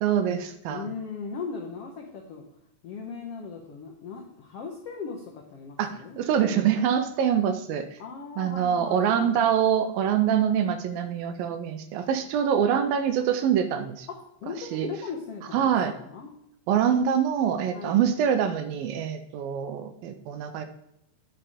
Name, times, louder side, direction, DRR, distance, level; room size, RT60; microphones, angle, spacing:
voice 1, 0.0-0.9 5.8-7.9 8.4-14.1 14.7-14.9 15.5-15.9 16.7-20.7, right 8 dB, 80° right, 9 dB, 2.5 m, -25 dB
voice 2, 0.7-2.5 2.8-6.2 8.0-9.4 14.1-16.3 17.7-18.0, left 5 dB, 80° left, 1 dB, 1.3 m, -38 dB
10.0 x 5.6 x 5.0 m, 0.81 s
omnidirectional pair, 4.3 m